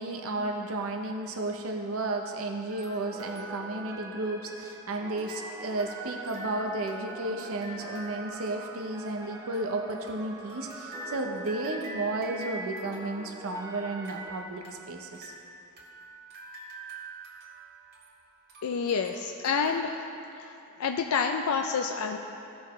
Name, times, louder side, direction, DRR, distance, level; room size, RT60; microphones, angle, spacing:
voice 1, 0.0-15.3, right 2 dB, 65° right, 3 dB, 0.7 m, -33 dB
sound 1, 2.7-4.7 5.2-19.8, right 2 dB, 50° right, 1.8 m, -45 dB
sound 2, 3.1-14.4, equal, 15° right, 0.5 m, -45 dB
voice 2, 18.6-20.0 20.3-22.2, left 5 dB, 75° left, 4 dB, 0.4 m, -29 dB
16.0 x 6.3 x 3.1 m, 2.8 s
head